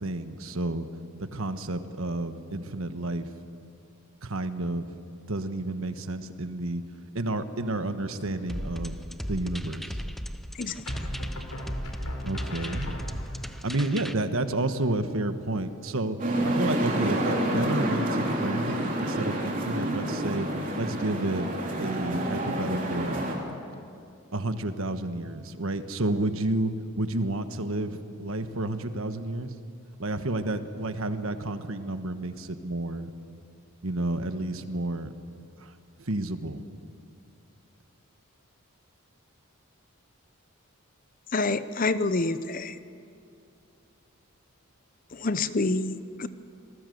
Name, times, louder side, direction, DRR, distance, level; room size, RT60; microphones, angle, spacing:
voice 1, 0.0-0.9 1.2-3.3 4.2-4.9 5.3-6.8 7.1-8.9 9.3-10.0 12.2-12.9 13.6-16.2 16.4-20.5 20.8-21.5 21.8-23.2 24.3-29.5 30.0-33.1 33.8-35.1 35.6-35.7 36.0-36.6, right 2 dB, 70° right, 9 dB, 1.3 m, -30 dB
sound 1, 8.2-8.8 10.9-13.5, equal, 85° left, 3.8 m, -37 dB
sound 2, 8.5-14.1, equal, ahead, 0.5 m, -36 dB
sound 3, 16.2-23.4, right 1 dB, 35° right, 3.4 m, -28 dB
voice 2, 41.3-42.8 45.1-46.3, left 3 dB, 40° left, 13 dB, 0.7 m, -27 dB
27.0 x 19.5 x 7.9 m, 2.5 s
head